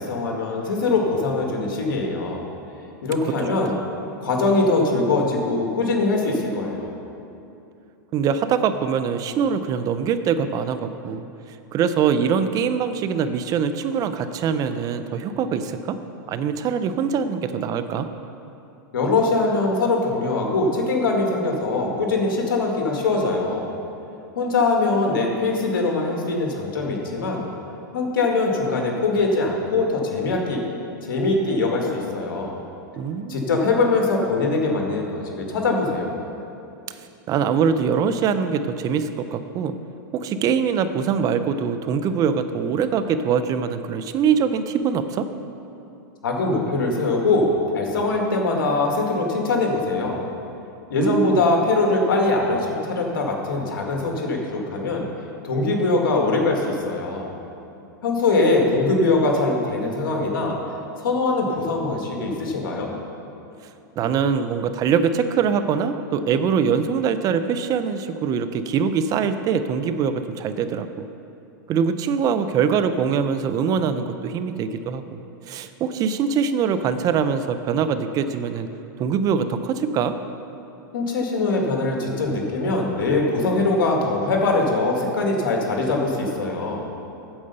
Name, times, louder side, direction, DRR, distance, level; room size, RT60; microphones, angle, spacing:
voice 1, 0.0-2.4 3.0-3.8 4.2-6.9 18.9-23.7 24.4-27.5 27.9-30.6 31.0-32.6 33.3-36.1 46.2-50.2 50.9-55.1 55.4-57.3 58.0-60.6 61.0-62.9 80.9-86.8, left 3 dB, 80° left, 1 dB, 1.8 m, -22 dB
voice 2, 8.1-11.3 11.7-16.0 16.3-18.1 33.0-33.5 37.3-39.7 40.1-45.3 51.0-51.4 64.0-71.1 71.7-75.0 75.5-78.7 79.0-80.1, right 6 dB, 35° right, 11 dB, 0.5 m, -23 dB
8.7 x 7.8 x 5.5 m, 2.7 s
hypercardioid pair, 120°, 11 cm